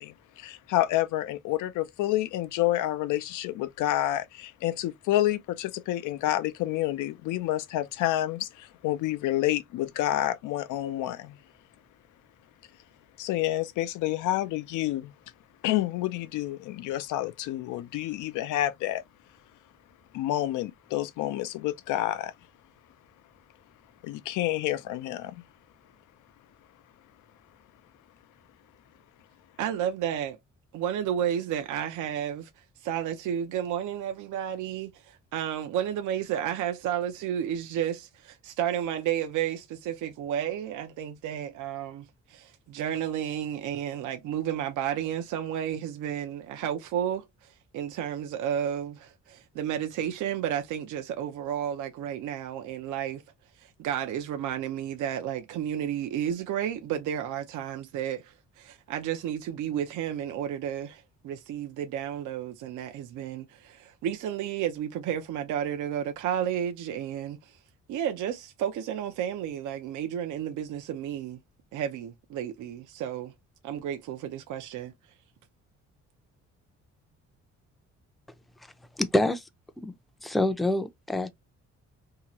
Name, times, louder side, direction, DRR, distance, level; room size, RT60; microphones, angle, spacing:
voice 1, 0.0-11.4 13.2-15.1 15.6-19.0 20.1-22.3 24.0-25.3, left 14 dB, 90° left, 0.5 m, -29 dB
voice 2, 29.6-30.4 30.7-32.5 32.8-53.2 53.6-67.6 67.9-71.4 71.7-73.3 73.6-74.9, right 10 dB, 80° right, 0.6 m, -32 dB
voice 3, 79.0-79.4 79.8-79.9 80.2-81.3, left 1 dB, ahead, 0.4 m, -26 dB
2.8 x 2.3 x 2.9 m
cardioid pair, 90°, 30 cm